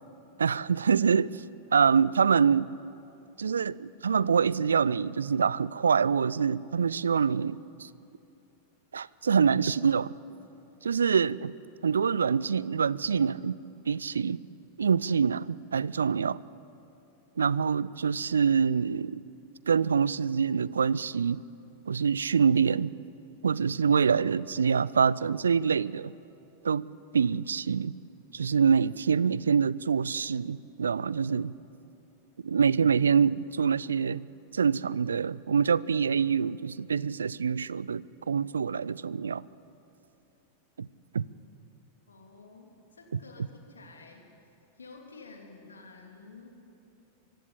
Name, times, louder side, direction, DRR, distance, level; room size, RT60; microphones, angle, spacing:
voice 1, 0.4-1.4 1.7-2.8 3.4-7.9 8.9-10.1 10.8-11.5 11.8-13.6 13.9-14.4 14.8-16.4 17.4-19.2 19.7-21.4 21.9-22.9 23.4-26.1 26.6-26.8 27.1-28.0 28.3-31.5 32.4-34.3 34.5-39.4 40.8-40.9 41.1-41.3, right 6 dB, 70° right, 22 dB, 0.4 m, -25 dB
voice 2, 42.1-44.3 44.8-46.6, left 3 dB, 75° left, 2 dB, 3.0 m, -50 dB
24.5 x 15.5 x 8.7 m, 2.8 s
figure-of-eight pair, 90°, 0 cm